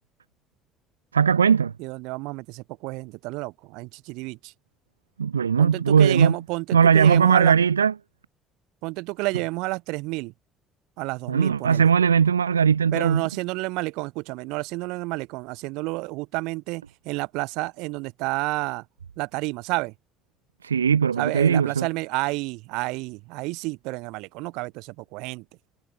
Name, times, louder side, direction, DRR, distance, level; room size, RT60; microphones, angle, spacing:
voice 1, 1.1-1.7 5.2-6.4 6.7-7.9 11.3-13.2 20.6-21.9, right 7 dB, 80° right, 0.5 m, -19 dB
voice 2, 1.8-4.5 5.6-7.5 8.8-10.3 11.0-11.9 12.9-18.8 19.2-19.9 21.2-25.4, right 24 dB, 60° right, 7.6 m, -30 dB
figure-of-eight pair, 50°, 0 cm